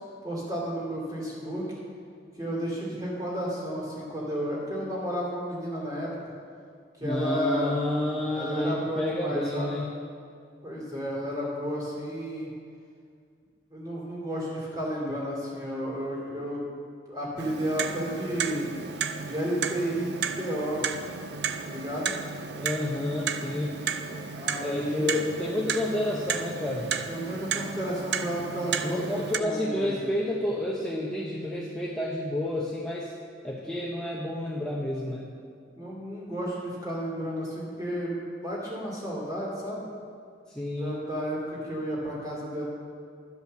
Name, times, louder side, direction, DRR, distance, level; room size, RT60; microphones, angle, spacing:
voice 1, 0.2-1.6 2.3-6.3 7.0-7.8 8.3-9.8 10.6-12.5 13.7-16.7 17.1-18.6 19.2-20.9 21.6-22.1 24.4-25.1 27.1-30.0 35.7-38.2 38.4-39.9 40.8-42.6, equal, 20° right, -6 dB, 2.7 m, -32 dB
voice 2, 7.0-9.9 22.5-23.8 24.1-24.2 24.5-26.9 28.8-33.1 33.4-35.3 40.5-41.0, left 1 dB, 5° left, -5 dB, 0.7 m, -30 dB
Clock, 17.4-29.4, right 6 dB, 60° right, 0.5 m, -33 dB
12.0 x 5.5 x 6.6 m, 2.2 s
head